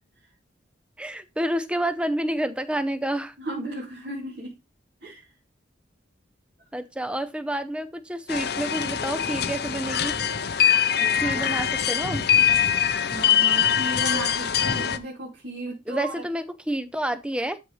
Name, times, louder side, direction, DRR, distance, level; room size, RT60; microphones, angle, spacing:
voice 1, 1.0-3.3 6.7-10.2 11.2-12.3 15.9-17.6, right 1 dB, 5° right, 0.7 m, -29 dB
voice 2, 3.4-4.5 5.0-5.3 11.0-11.4 13.1-16.2, right 1 dB, 60° right, 2.8 m, -35 dB
sound 1, 8.3-15.0, left 8 dB, 55° left, 0.7 m, -23 dB
12.5 x 4.3 x 3.2 m
head